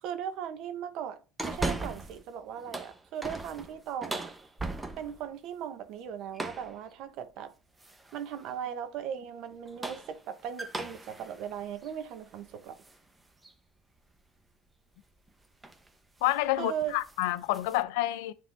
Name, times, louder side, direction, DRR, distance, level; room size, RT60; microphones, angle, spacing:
voice 1, 0.0-4.3 5.0-7.5 8.1-12.8 16.6-17.0, right 9 dB, 60° right, 1.0 m, -38 dB
sound 1, 1.4-2.2 2.6-5.3 6.3-6.8 7.8-8.2 9.5-13.0 13.4-13.5 15.1-15.3 15.6-15.9 16.2-16.4 16.8-17.8, right 2 dB, 10° right, 0.9 m, -38 dB
voice 2, 16.2-18.3, left 16 dB, 80° left, 0.5 m, -28 dB
9.7 x 3.7 x 3.4 m
supercardioid pair, 110°, 0 cm